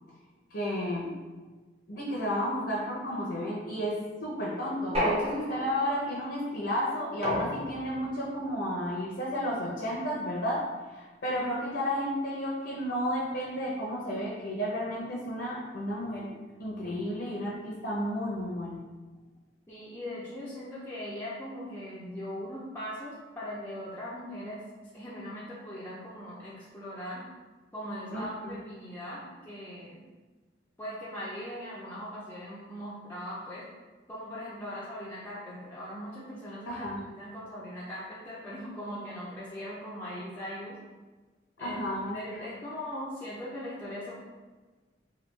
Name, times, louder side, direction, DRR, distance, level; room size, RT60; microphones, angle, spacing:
voice 1, 0.5-1.1 1.9-16.3 16.6-18.8 28.1-28.6 36.7-37.0 41.6-42.4, equal, 65° left, -5 dB, 0.6 m, -32 dB
sound 1, 4.9-5.9 7.2-8.1, equal, 35° right, 0.7 m, -31 dB
voice 2, 19.7-24.6 24.9-27.2 27.7-30.0 30.8-33.6 34.1-40.8 41.6-44.1, equal, 10° left, -8 dB, 0.4 m, -40 dB
3.3 x 2.3 x 3.1 m, 1.3 s
head